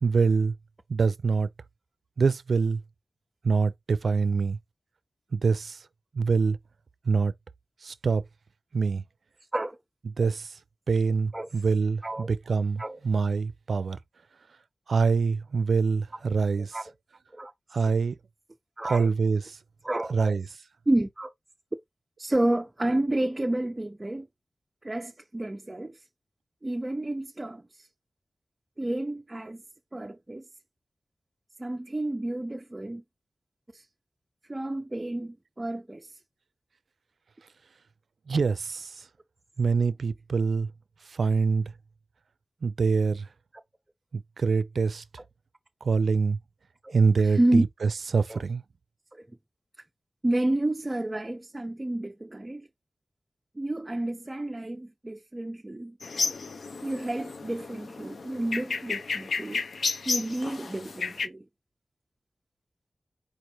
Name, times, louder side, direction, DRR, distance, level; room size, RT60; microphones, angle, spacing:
voice 1, 0.0-0.5 0.9-1.5 2.2-2.8 3.4-4.6 5.3-5.8 6.1-6.6 7.1-7.3 7.8-8.2 8.7-9.0 10.2-10.6 10.9-14.0 14.9-16.8 17.7-18.2 18.8-19.6 20.1-20.4 38.3-39.0 39.6-40.7 41.1-41.7 42.6-43.3 44.1-45.0 45.8-46.4 46.9-48.6, right 5 dB, 85° right, 0.4 m, -25 dB
voice 2, 12.0-12.4 12.8-13.0 16.3-16.4 16.7-16.8 17.3-17.5 18.8-19.1 19.8-20.4 20.9-21.3 22.2-24.3 24.8-26.0 26.6-27.9 28.8-29.6 29.9-30.4 31.6-33.0 33.7-33.8 34.5-36.1 46.8-46.9 47.2-47.6 48.3-48.4 49.1-49.2 50.2-52.7 53.6-56.0 56.8-59.7 60.1-61.4, right 1 dB, 25° right, 0.6 m, -30 dB
sound 1, 56.0-61.3, left 4 dB, 85° left, 0.5 m, -32 dB
4.7 x 2.4 x 4.4 m
wide cardioid pair, 75°, 0 cm